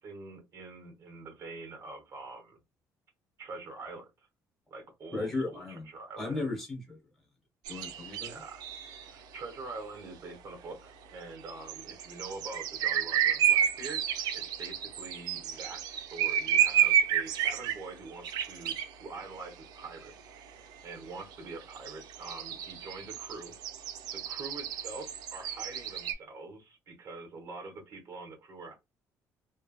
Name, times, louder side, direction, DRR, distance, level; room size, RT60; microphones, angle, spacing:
voice 1, 0.0-2.6 3.4-4.1 4.7-6.5 8.3-8.7 9.0-20.3 20.8-23.5 24.1-28.8, right 3 dB, 45° right, 1.0 m, -45 dB
voice 2, 5.1-5.9 6.2-7.0 7.7-8.3, left 3 dB, 5° left, 1.2 m, -35 dB
sound 1, 7.7-9.1 11.5-17.8 18.2-18.9 20.0-20.1 20.4-20.5 20.7-20.8 21.3-26.1, right 10 dB, 85° right, 0.4 m, -30 dB
3.2 x 2.0 x 2.2 m
cardioid pair, 130°, 7 cm